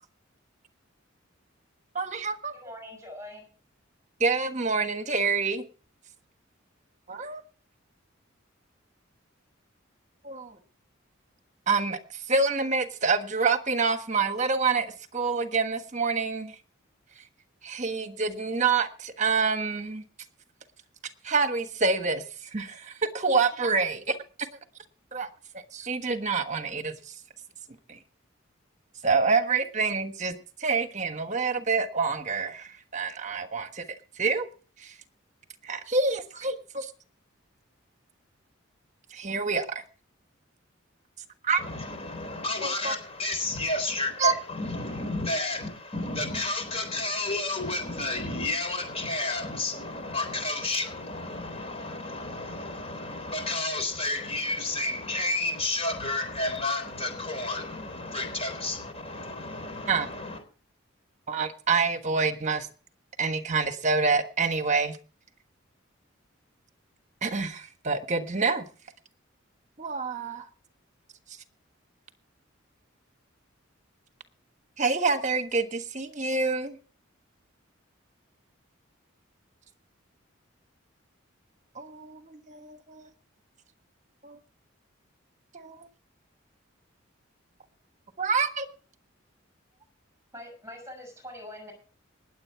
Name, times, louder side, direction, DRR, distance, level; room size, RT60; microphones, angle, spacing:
voice 1, 1.9-2.5 4.2-5.6 7.1-7.4 10.2-10.6 11.7-16.5 17.6-20.0 21.2-22.2 22.5-24.2 25.1-25.3 25.5-27.1 27.9-28.0 29.0-33.8 34.2-34.5 34.8-34.9 35.6-36.9 39.1-39.8 41.4-41.6 42.6-43.0 44.2-44.3 59.9-60.1 61.3-62.7 63.2-65.0 67.2-68.7 69.8-70.5 74.8-76.8 81.7-83.1 84.2-84.4 85.5-85.9 88.2-88.7, right 4 dB, 35° right, 1.3 m, -27 dB
voice 2, 2.5-3.5 90.3-91.7, left 1 dB, 15° right, 6.2 m, -43 dB
voice 3, 41.6-60.4, left 2 dB, 30° left, 3.7 m, -31 dB
19.5 x 8.2 x 4.7 m
head